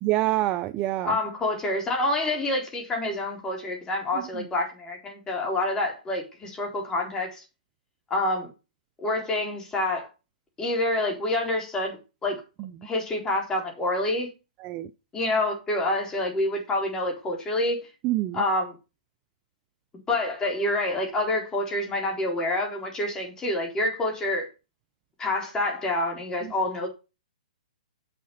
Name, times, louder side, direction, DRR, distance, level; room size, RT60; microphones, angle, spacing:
voice 1, 0.0-1.2 4.3-4.4 12.6-12.7 14.6-14.9 18.0-18.4, right 16 dB, 30° right, 0.5 m, -26 dB
voice 2, 1.0-7.4 8.1-8.5 9.0-10.1 10.6-12.4 12.8-14.3 15.1-17.8 18.3-18.7 20.1-24.5 25.2-26.9, left 2 dB, 15° left, 4.1 m, -27 dB
7.6 x 6.8 x 5.6 m
hypercardioid pair, 140°, 5 cm